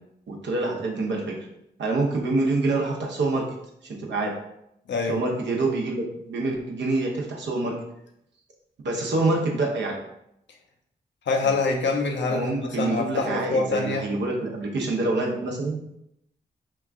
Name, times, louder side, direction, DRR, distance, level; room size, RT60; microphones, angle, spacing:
voice 1, 0.3-1.4 1.8-3.4 3.8-4.4 5.1-7.7 8.8-10.0 12.3-15.8, right 2 dB, 70° right, -1 dB, 0.8 m, -26 dB
voice 2, 4.9-5.2 11.3-14.1, left 3 dB, 70° left, 2 dB, 0.6 m, -25 dB
3.0 x 2.3 x 3.6 m, 0.79 s
supercardioid pair, 40°, 19 cm